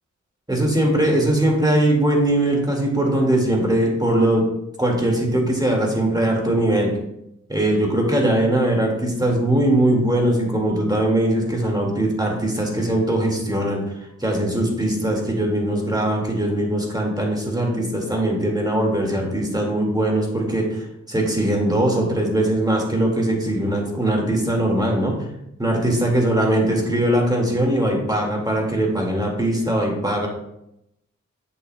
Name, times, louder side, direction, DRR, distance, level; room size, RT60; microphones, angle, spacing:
voice 1, 0.5-4.5 4.8-6.9 7.5-25.2 25.6-30.3, right 1 dB, 15° right, 0 dB, 2.0 m, -21 dB
8.2 x 6.4 x 2.2 m, 0.82 s
cardioid pair, 50°, 30 cm